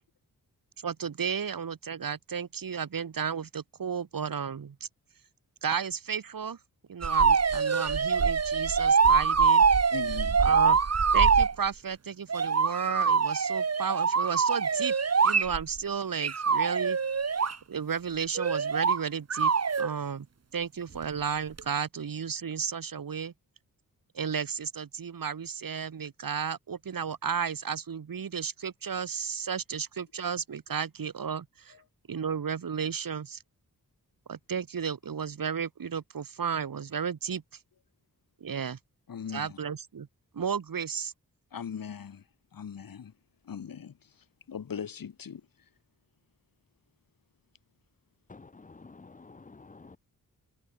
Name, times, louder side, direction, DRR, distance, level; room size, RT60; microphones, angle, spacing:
voice 1, 0.8-4.8 5.6-6.6 6.9-9.6 10.4-10.8 11.1-14.9 15.2-17.0 17.7-19.5 19.8-20.3 20.5-23.3 24.1-31.7 32.1-33.4 34.3-37.4 38.4-38.8 39.3-40.1 40.3-41.1, right 7 dB, 70° right, 6.2 m, -33 dB
sound 1, 7.0-11.5 12.3-15.8 16.2-17.6 18.4-19.0 19.3-19.9 21.6-21.7, right 5 dB, 45° right, 2.2 m, -24 dB
voice 2, 9.9-10.5 31.7-31.8 39.1-39.6 41.5-42.2 42.5-43.1 43.4-45.4, left 7 dB, 70° left, 3.3 m, -40 dB
voice 3, 48.3-50.0, left 3 dB, 20° left, 0.8 m, -50 dB
wide cardioid pair, 105°, 35 cm